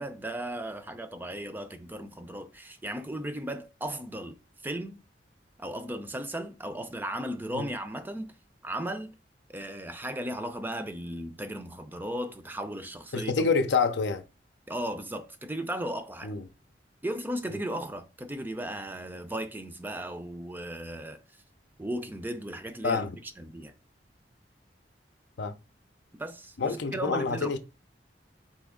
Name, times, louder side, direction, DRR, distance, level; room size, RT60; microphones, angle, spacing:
voice 1, 0.0-4.4 4.6-5.0 5.6-8.4 8.6-9.2 9.5-13.5 14.7-16.3 17.0-21.2 21.8-23.7 26.1-27.6, right 1 dB, 10° right, 0.4 m, -36 dB
voice 2, 13.1-14.2 16.2-16.4 22.8-23.1 25.4-25.5 26.6-27.6, left 4 dB, 85° left, 0.6 m, -27 dB
4.3 x 2.9 x 3.6 m
head